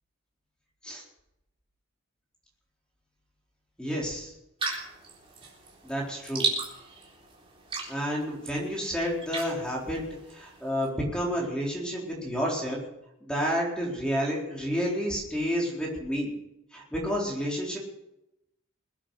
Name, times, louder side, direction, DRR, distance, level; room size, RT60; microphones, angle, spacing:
voice 1, 3.8-4.3 5.8-6.4 7.9-10.0 10.3-12.8 13.2-16.3 16.7-17.8, equal, 5° left, -3 dB, 4.2 m, -30 dB
sound 1, 4.6-10.9, right 4 dB, 25° right, 3.9 m, -36 dB
22.0 x 8.9 x 6.4 m, 0.86 s
head